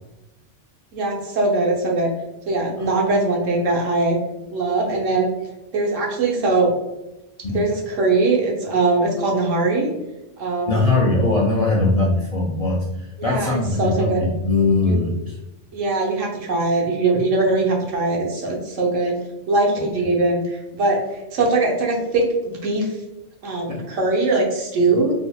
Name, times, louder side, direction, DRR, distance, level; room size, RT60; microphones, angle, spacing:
voice 1, 0.9-2.1 2.5-4.2 4.5-5.3 5.7-6.7 7.5-9.9 10.4-10.9 13.2-14.2 14.8-15.0 15.7-19.2 19.5-22.9 23.4-25.1, right 3 dB, 85° right, -1 dB, 1.3 m, -21 dB
voice 2, 10.7-15.4 19.8-19.9 23.7-23.8, left 2 dB, 55° left, -4 dB, 0.4 m, -21 dB
4.1 x 2.7 x 2.3 m, 0.97 s
omnidirectional pair, 1.3 m